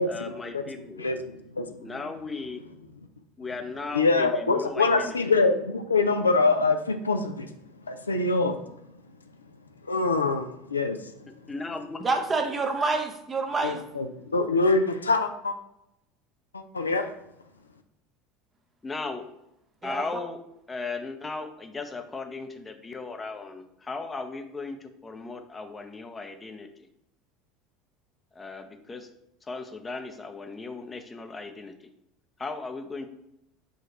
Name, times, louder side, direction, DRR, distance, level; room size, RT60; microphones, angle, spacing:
voice 1, 0.0-1.1 1.8-2.6 3.4-5.2 11.3-12.0 18.8-19.3 19.8-20.4 20.7-26.9 28.3-29.1 29.4-31.9 32.4-33.1, left 3 dB, 20° left, 6 dB, 0.6 m, -37 dB
voice 2, 1.0-1.7 3.9-7.5 7.9-8.6 9.9-11.0 13.6-14.1 14.3-15.5 16.5-17.1, left 3 dB, 90° left, 7 dB, 0.3 m, -24 dB
voice 3, 12.0-13.8 19.8-20.0, right 3 dB, 25° right, 4 dB, 0.7 m, -27 dB
6.0 x 2.4 x 2.9 m, 0.82 s
hypercardioid pair, 75°, 0 cm